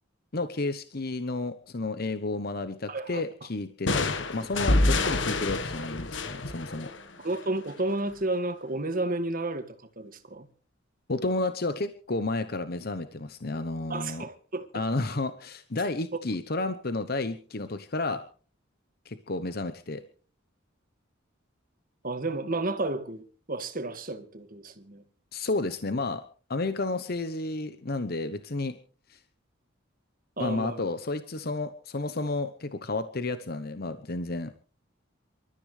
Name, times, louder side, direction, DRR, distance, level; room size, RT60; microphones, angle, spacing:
voice 1, 0.3-6.9 11.1-14.2 14.7-18.2 19.1-20.0 25.3-26.2 26.5-28.8 29.1-29.2 30.4-34.5, left 2 dB, 50° left, 0.9 m, -31 dB
voice 2, 2.9-3.2 7.2-9.7 10.0-10.5 13.9-14.7 22.0-25.0 30.4-30.8, right 2 dB, 45° right, 2.0 m, -31 dB
sound 1, 3.9-7.5, left 2 dB, 65° left, 1.4 m, -27 dB
27.5 x 13.5 x 3.3 m
head